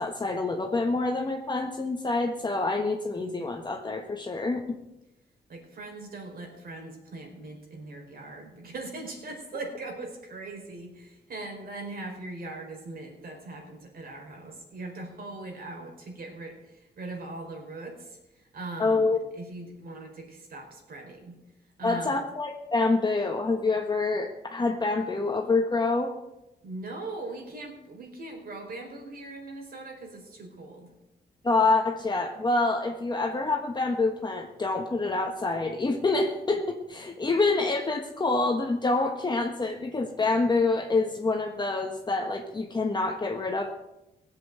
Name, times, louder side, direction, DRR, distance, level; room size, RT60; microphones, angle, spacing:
voice 1, 0.0-4.6 18.8-19.2 21.8-26.1 31.4-43.7, left 3 dB, 25° left, 3 dB, 1.4 m, -26 dB
voice 2, 5.5-21.3 21.8-22.2 26.6-30.9, right 2 dB, 60° right, 2 dB, 4.9 m, -40 dB
18.0 x 7.9 x 7.8 m, 0.93 s
cardioid pair, 105°, 17 cm